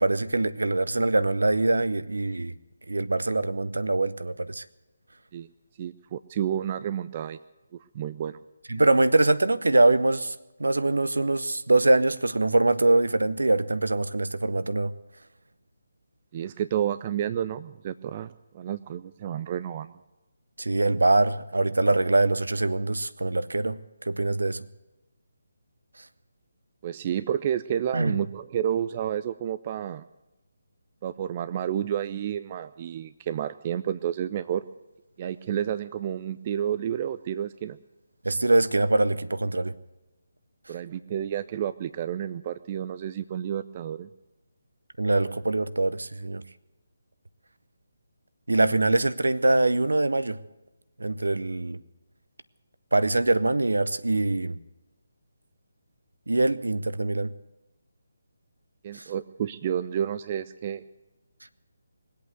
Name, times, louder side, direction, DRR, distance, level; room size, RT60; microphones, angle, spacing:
voice 1, 0.0-2.5 2.9-4.6 8.7-14.9 20.6-23.8 24.0-24.6 27.9-28.2 38.2-39.8 40.7-40.8 45.0-46.4 48.5-50.4 51.0-51.8 52.9-54.6 56.3-57.3 58.9-59.1, right 2 dB, 65° right, 0.8 m, -23 dB
voice 2, 5.8-7.4 7.9-8.4 16.3-19.9 26.8-30.0 31.0-34.6 35.2-37.8 40.7-44.1 58.8-60.8, right 10 dB, 25° right, 0.4 m, -30 dB
21.0 x 8.5 x 8.0 m
figure-of-eight pair, 150°, 0 cm